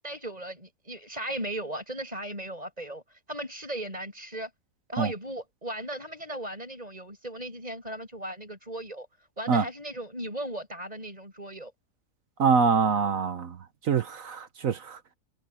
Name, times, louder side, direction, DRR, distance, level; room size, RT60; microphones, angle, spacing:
voice 1, 0.0-3.0 3.3-4.5 4.9-9.1 9.4-11.7, right 1 dB, 25° right, 8.3 m, -37 dB
voice 2, 12.4-13.6 13.8-15.0, right 5 dB, 60° right, 1.3 m, -24 dB
omnidirectional pair, 1.7 m